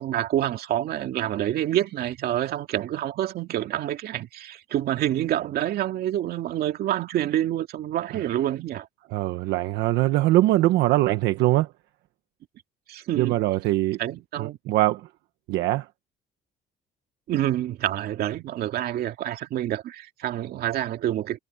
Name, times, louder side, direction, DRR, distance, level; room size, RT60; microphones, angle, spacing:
voice 1, 0.0-8.9 12.9-13.4 14.0-14.6 17.3-21.4, right 12 dB, 70° right, 2.3 m, -27 dB
voice 2, 9.1-11.7 13.2-14.0 14.4-15.0 15.5-15.8, right 16 dB, 90° right, 1.2 m, -22 dB
cardioid pair, 110°, 17 cm